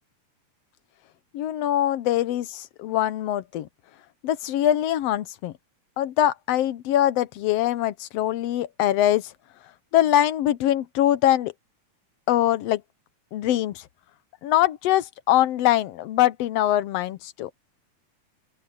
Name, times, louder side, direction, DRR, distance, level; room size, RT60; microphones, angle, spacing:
voice 1, 1.3-3.7 4.2-5.5 6.0-9.3 9.9-11.5 12.3-12.8 13.3-13.8 14.4-17.5, left 12 dB, 75° left, 1.6 m, -23 dB
open air
omnidirectional pair, 3.5 m